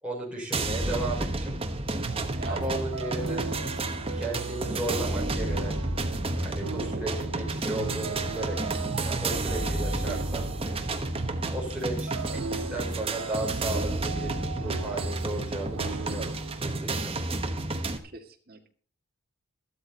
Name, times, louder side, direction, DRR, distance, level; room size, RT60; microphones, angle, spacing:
voice 1, 0.0-1.6 2.5-3.4 4.1-5.8 6.4-8.6 9.1-10.5 11.5-12.4 12.7-17.1, right 2 dB, 5° right, -3 dB, 5.3 m, -35 dB
sound 1, 0.5-18.0, right 2 dB, 25° right, 1.2 m, -31 dB
sound 2, 1.9-16.6, right 5 dB, 80° right, 0.6 m, -38 dB
voice 2, 2.3-3.2 9.5-10.0 18.0-18.7, right 3 dB, 45° right, 2 dB, 2.1 m, -43 dB
14.0 x 12.5 x 4.1 m, 0.41 s
head